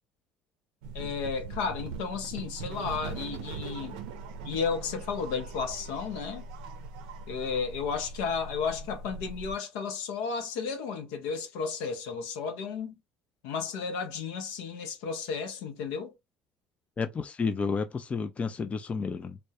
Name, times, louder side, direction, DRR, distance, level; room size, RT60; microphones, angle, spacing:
sound 1, 0.8-9.5, right 4 dB, 80° right, 0.5 m, -41 dB
voice 1, 0.9-4.0 4.4-6.4 7.3-12.9 13.4-16.1, left 5 dB, 75° left, 0.5 m, -33 dB
voice 2, 17.0-19.4, left 5 dB, 30° left, 0.3 m, -31 dB
2.2 x 2.0 x 2.6 m
hypercardioid pair, 65°, 5 cm